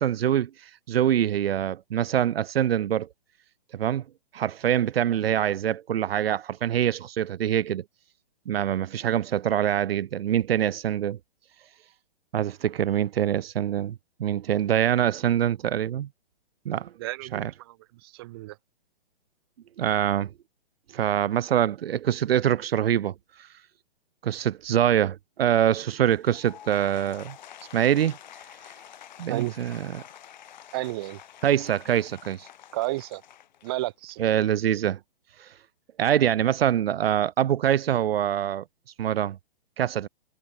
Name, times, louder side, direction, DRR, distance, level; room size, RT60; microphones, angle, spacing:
voice 1, 0.0-3.1 3.7-4.0 4.3-7.8 8.5-11.2 12.3-13.9 14.2-16.1 16.7-16.9 17.3-17.5 19.8-20.3 20.9-23.1 24.2-27.4 27.7-28.2 29.2-30.0 31.4-32.5 34.2-35.0 35.4-35.5 36.0-38.6 39.0-39.4 39.8-40.1, right 10 dB, 85° right, 0.6 m, -24 dB
voice 2, 17.0-17.7 18.0-18.6 29.3-29.5 30.7-31.2 32.7-33.2 33.6-34.2, right 19 dB, 25° right, 1.3 m, -32 dB
Applause / Crowd, 26.0-34.2, left 10 dB, 50° left, 3.7 m, -48 dB
hypercardioid pair, 165°, 29 cm